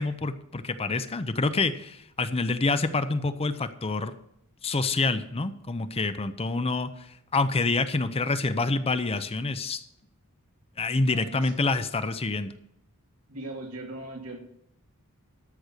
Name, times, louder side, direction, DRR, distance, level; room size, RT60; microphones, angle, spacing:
voice 1, 0.0-4.1 4.6-9.8 10.8-12.5, left 3 dB, 25° left, 11 dB, 0.6 m, -27 dB
voice 2, 10.9-11.5 13.3-14.4, right 2 dB, 80° right, 1 dB, 2.7 m, -39 dB
13.0 x 6.1 x 6.5 m, 0.77 s
head